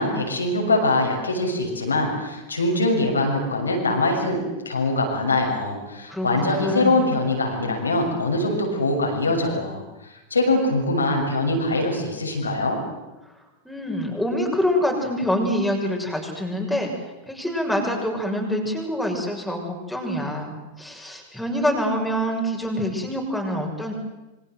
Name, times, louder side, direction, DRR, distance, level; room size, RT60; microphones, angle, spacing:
voice 1, 0.0-9.8 10.3-12.8, left 2 dB, 75° left, 1 dB, 6.7 m, -23 dB
voice 2, 6.1-7.0 13.6-16.9 17.3-23.9, equal, ahead, 0 dB, 6.8 m, -26 dB
27.5 x 25.0 x 7.8 m, 1.1 s
figure-of-eight pair, 90°, 0 cm